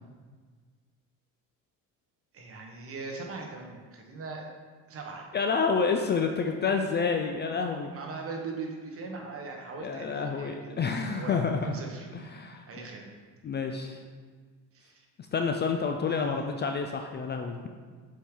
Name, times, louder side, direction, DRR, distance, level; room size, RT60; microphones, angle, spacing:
voice 1, 2.3-4.5 4.9-5.3 7.9-12.1 12.7-13.1 14.7-15.0 16.0-16.5, right 4 dB, 40° right, 1 dB, 1.1 m, -40 dB
voice 2, 5.3-7.9 9.8-11.7 12.1-12.7 13.4-14.0 15.3-17.7, left 5 dB, 30° left, 4 dB, 0.4 m, -29 dB
6.8 x 4.6 x 3.8 m, 1.5 s
cardioid pair, 125°, 35 cm